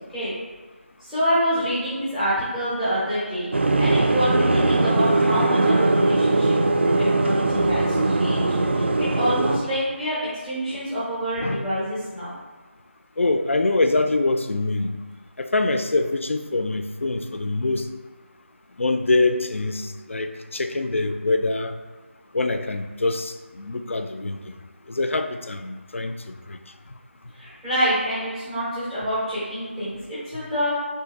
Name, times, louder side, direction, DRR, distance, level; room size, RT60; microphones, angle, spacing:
voice 1, 1.0-3.5 3.8-12.3 27.3-30.7, equal, ahead, -11 dB, 0.5 m, -27 dB
sound 1, 3.5-9.6, right 2 dB, 60° right, 0.4 m, -20 dB
voice 2, 13.2-14.9 15.4-17.9 18.8-21.7 22.3-24.5 24.9-26.6, left 2 dB, 75° left, 8 dB, 0.4 m, -24 dB
3.6 x 2.7 x 4.0 m, 1.4 s
figure-of-eight pair, 175°, 7 cm